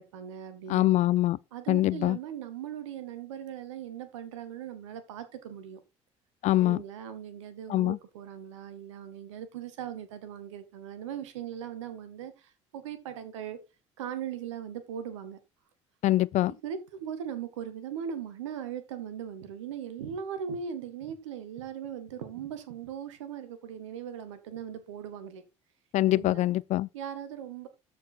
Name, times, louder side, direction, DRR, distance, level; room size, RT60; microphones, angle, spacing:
voice 1, 0.0-0.9 1.5-5.8 6.6-13.6 14.0-15.4 16.5-25.4 26.1-26.5 26.9-27.7, right 8 dB, 75° right, 1.2 m, -39 dB
voice 2, 0.7-1.4 1.7-2.2 6.4-6.8 7.7-8.0 16.0-16.5 25.9-26.9, left 15 dB, 50° left, 0.4 m, -24 dB
13.0 x 4.7 x 4.2 m
figure-of-eight pair, 55°, 16 cm